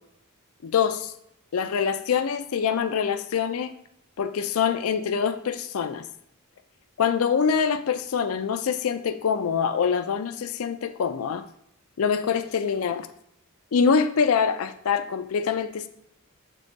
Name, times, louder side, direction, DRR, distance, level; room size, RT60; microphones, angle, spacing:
voice 1, 0.6-1.1 1.5-3.7 4.2-6.0 7.0-11.4 12.0-13.1 13.7-15.9, left 6 dB, 70° left, 9 dB, 0.4 m, -25 dB
7.4 x 3.6 x 3.9 m, 0.76 s
head